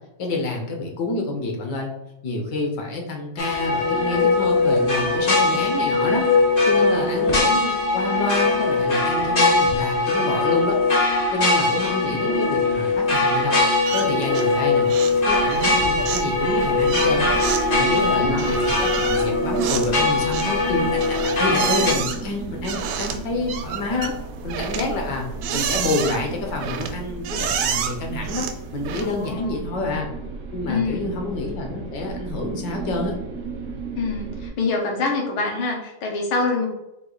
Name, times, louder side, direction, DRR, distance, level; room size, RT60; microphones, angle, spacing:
voice 1, 0.2-1.9 2.2-6.2 6.6-10.8 11.3-13.6 13.9-14.9 15.3-17.3 17.7-24.1 24.4-25.3 25.5-28.5 28.7-30.1 30.5-33.1, left 2 dB, 65° left, 2 dB, 1.3 m, -28 dB
sound 1, 3.4-21.9, left 3 dB, 45° left, 0.7 m, -21 dB
voice 2, 6.6-7.1 17.9-18.5 29.0-29.7 30.7-31.1 34.0-36.7, left 3 dB, 80° left, 0 dB, 1.8 m, -26 dB
sound 2, 13.9-14.6 14.9-15.2 15.5-29.3, right 7 dB, 80° right, 1.3 m, -30 dB
sound 3, 15.2-34.5, right 3 dB, 65° right, 0.8 m, -35 dB
4.9 x 2.6 x 3.9 m, 0.92 s
omnidirectional pair, 2.2 m